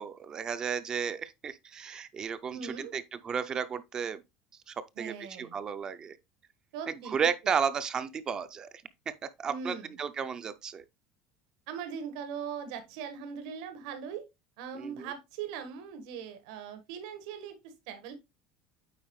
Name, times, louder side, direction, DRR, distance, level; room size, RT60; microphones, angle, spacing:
voice 1, 0.0-4.2 4.7-6.2 6.9-8.7 9.1-9.2 9.4-10.8 14.7-15.1, right 6 dB, 20° right, 0.4 m, -33 dB
voice 2, 2.5-2.9 5.0-5.5 6.7-7.1 9.5-9.9 11.7-14.3 14.6-18.1, right 7 dB, 75° right, 1.4 m, -40 dB
8.8 x 4.4 x 3.1 m
cardioid pair, 180°, 3 cm